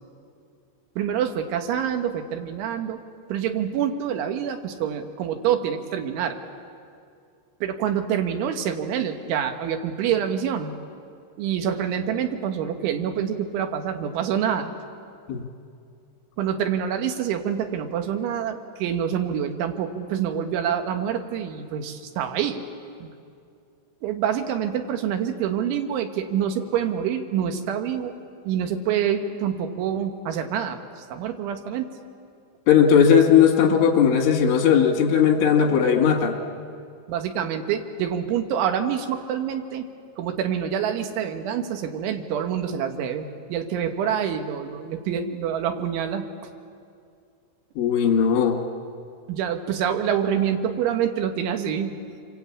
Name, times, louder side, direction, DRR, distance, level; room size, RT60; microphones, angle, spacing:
voice 1, 1.0-3.0 3.3-6.4 7.6-10.7 11.4-14.7 16.4-22.6 23.0-23.1 24.0-28.1 28.5-31.9 37.1-39.9 40.2-46.3 49.3-51.9, right 8 dB, 85° right, 5 dB, 3.9 m, -26 dB
voice 2, 32.7-36.4 47.8-48.6, left 7 dB, 90° left, 4 dB, 4.7 m, -18 dB
27.5 x 24.0 x 8.7 m, 2.4 s
omnidirectional pair, 5.4 m